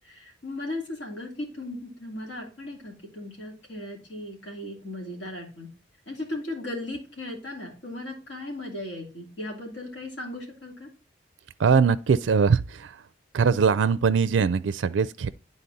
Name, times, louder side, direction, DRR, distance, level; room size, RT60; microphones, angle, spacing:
voice 1, 0.1-5.7 6.1-10.9, left 1 dB, 70° left, 2.9 m, -37 dB
voice 2, 11.6-13.0 13.3-15.3, right 5 dB, 80° right, 0.4 m, -22 dB
9.9 x 4.1 x 4.0 m
head